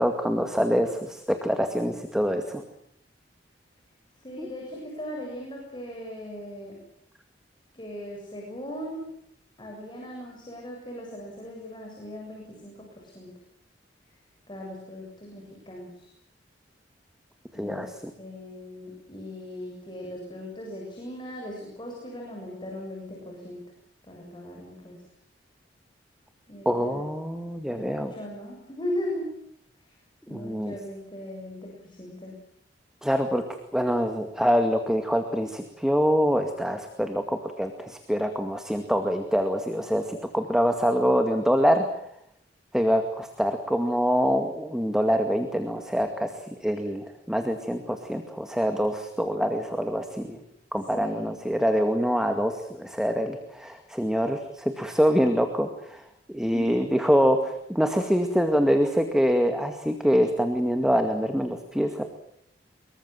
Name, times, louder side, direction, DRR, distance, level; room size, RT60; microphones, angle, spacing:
voice 1, 0.0-2.6 4.4-4.5 17.6-17.9 26.7-28.1 30.3-30.7 33.0-33.4 33.7-41.9 42.7-50.4 50.7-56.0 56.3-62.0, equal, 5° right, 6 dB, 2.1 m, -25 dB
voice 2, 4.2-6.8 7.7-9.1 9.6-13.3 14.5-16.1 17.5-17.9 18.2-23.6 24.1-25.0 26.5-27.1 27.7-29.4 30.3-32.3 50.9-51.3 56.5-56.7, left 1 dB, 25° left, -1 dB, 7.5 m, -38 dB
25.5 x 23.0 x 7.6 m, 0.72 s
head